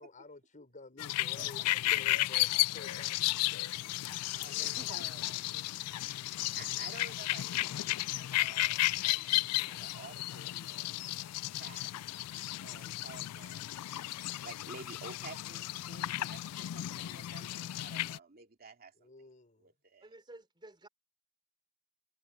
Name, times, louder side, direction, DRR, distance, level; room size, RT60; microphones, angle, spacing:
voice 1, 0.0-4.3 17.5-17.7 19.0-19.7, left 2 dB, 35° left, 5.4 m, -52 dB
sound 1, 1.0-18.2, left 16 dB, 85° left, 0.3 m, -34 dB
voice 2, 1.4-1.7 4.3-5.7 6.6-11.1 11.5-11.9 12.6-13.7 14.4-19.1 19.6-20.1, right 4 dB, 45° right, 2.6 m, -52 dB
Musical instrument, 5.0-18.0, left 6 dB, 60° left, 6.0 m, -72 dB
voice 3, 20.0-20.9, right 2 dB, 20° right, 3.9 m, -53 dB
head